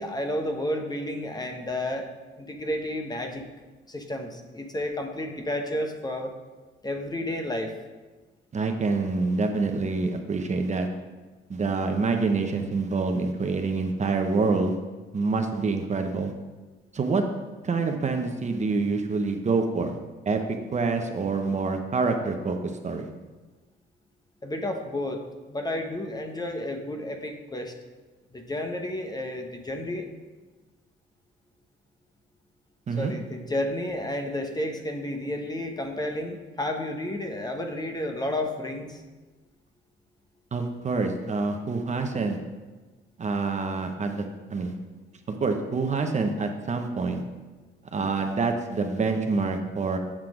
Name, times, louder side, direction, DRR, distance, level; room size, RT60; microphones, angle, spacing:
voice 1, 0.0-2.1 2.4-3.4 3.9-6.3 6.8-7.7 24.4-27.7 28.3-30.2 33.0-39.0, left 1 dB, 20° left, 5 dB, 0.9 m, -31 dB
voice 2, 8.5-10.9 11.5-14.8 15.1-16.3 16.9-17.2 17.6-20.0 20.3-20.4 20.7-22.6 22.8-23.1 32.9-33.1 40.5-42.4 43.2-44.2 44.5-44.7 45.3-47.2 47.9-50.0, right 4 dB, 35° right, 5 dB, 0.8 m, -26 dB
7.5 x 5.8 x 4.9 m, 1.3 s
cardioid pair, 90°, 20 cm